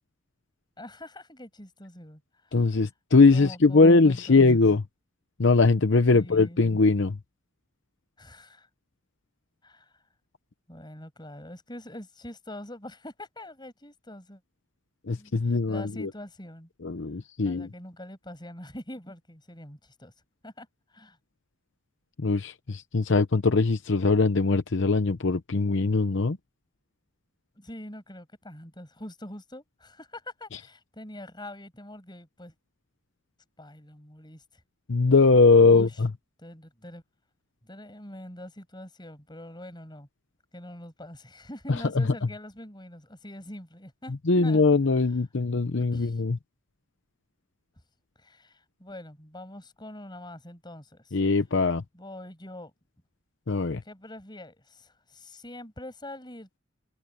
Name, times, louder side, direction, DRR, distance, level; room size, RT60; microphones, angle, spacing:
voice 1, 0.8-2.7 3.3-4.4 6.1-6.6 8.2-8.7 9.6-10.0 10.7-14.4 15.1-16.7 17.4-20.1 20.4-21.2 27.6-32.5 33.6-34.4 35.6-36.0 36.4-37.0 37.6-40.1 40.5-44.1 44.4-44.7 45.8-46.2 48.2-51.2 51.9-52.7 53.8-56.6, left 1 dB, 20° left, 7.2 m, -44 dB
voice 2, 2.5-4.8 5.4-7.2 15.1-16.1 16.8-17.7 22.2-26.4 34.9-36.1 42.0-42.1 44.3-46.4 51.1-51.8 53.5-53.8, left 3 dB, 60° left, 0.8 m, -21 dB
head